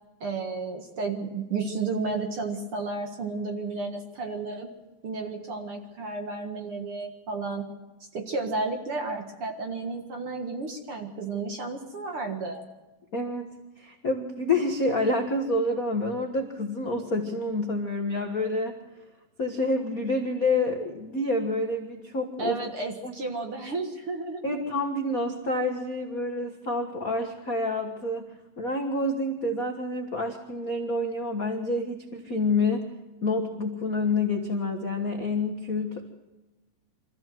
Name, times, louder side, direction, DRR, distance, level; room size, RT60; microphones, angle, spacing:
voice 1, 0.2-4.7 5.0-7.7 8.1-12.6 22.4-24.6, right 3 dB, 45° right, 3 dB, 2.1 m, -32 dB
voice 2, 13.1-18.8 19.4-22.6 23.0-23.1 24.4-28.3 28.6-32.9 33.2-36.0, left 2 dB, 55° left, 2 dB, 0.9 m, -28 dB
25.0 x 14.5 x 7.6 m, 1.1 s
omnidirectional pair, 4.0 m